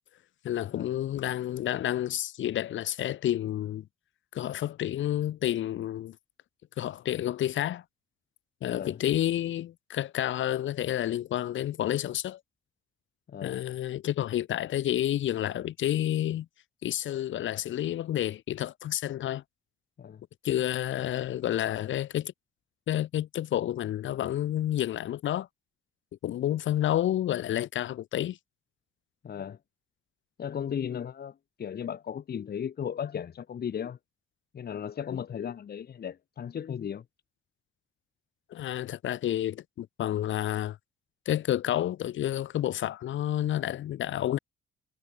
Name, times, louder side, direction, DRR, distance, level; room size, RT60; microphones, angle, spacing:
voice 1, 0.4-3.8 4.3-6.2 6.8-7.8 8.6-12.4 13.4-16.5 16.8-19.4 20.4-22.3 22.9-25.5 26.2-28.4 35.1-35.5 38.5-40.8 41.2-44.4, left 12 dB, 75° left, 3.4 m, -30 dB
voice 2, 8.7-9.0 13.3-13.6 20.0-20.2 29.2-29.6 30.4-34.0 34.5-37.0, left 8 dB, 50° left, 2.3 m, -36 dB
cardioid pair, 90°, 20 cm